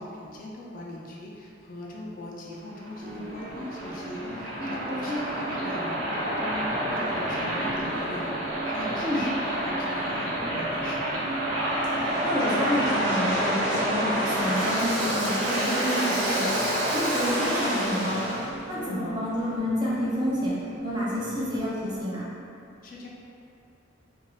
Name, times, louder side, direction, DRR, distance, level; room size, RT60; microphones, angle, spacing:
voice 1, 0.0-11.3 22.8-23.1, left 1 dB, 45° left, -3 dB, 0.3 m, -40 dB
Waves surf, 2.7-18.5, right 1 dB, 75° right, 1.0 m, -28 dB
sound 1, 3.0-22.0, right 1 dB, 45° right, 1.2 m, -40 dB
voice 2, 4.9-5.2 9.0-9.2 11.9-18.4 18.7-20.5 20.8-22.2, equal, 20° right, -8 dB, 0.5 m, -29 dB
2.6 x 2.3 x 3.0 m, 2.6 s
head